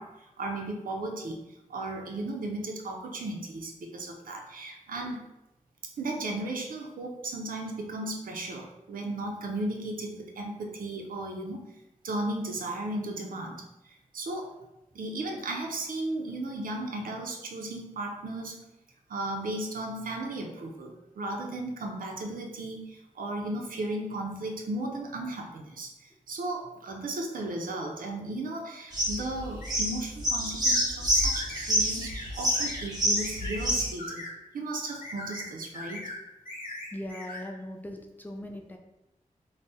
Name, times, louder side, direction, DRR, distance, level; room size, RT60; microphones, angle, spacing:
voice 1, 0.0-1.4 1.7-5.2 5.8-11.7 12.0-13.6 14.1-14.6 14.9-18.6 19.1-34.3 34.5-36.1, right 2 dB, 80° right, 2 dB, 0.5 m, -35 dB
sound 1, 28.9-33.9, equal, 30° right, 0.9 m, -27 dB
sound 2, 29.6-29.8 30.6-30.8 31.1-31.7 32.0-32.3 32.5-32.8 33.2-33.6 34.0-34.3 34.9-35.5 35.7-36.2 36.4-37.4, left 2 dB, 90° left, 0.9 m, -40 dB
voice 2, 36.9-38.8, left 1 dB, 15° left, 2 dB, 0.3 m, -39 dB
2.6 x 2.0 x 3.6 m, 0.91 s
wide cardioid pair, 110°, 14 cm